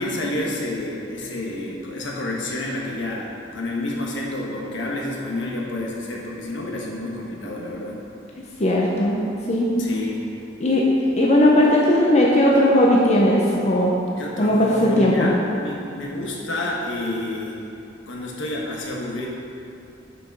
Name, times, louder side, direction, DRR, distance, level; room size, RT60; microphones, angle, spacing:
voice 1, 0.0-8.0 9.8-10.2 14.2-17.6 18.1-19.3, left 1 dB, 75° left, -2 dB, 1.3 m, -29 dB
voice 2, 8.6-9.7 10.6-10.8 11.2-13.9 14.4-15.3, left 1 dB, 35° left, -3 dB, 0.8 m, -18 dB
6.8 x 6.0 x 5.3 m, 2.7 s
head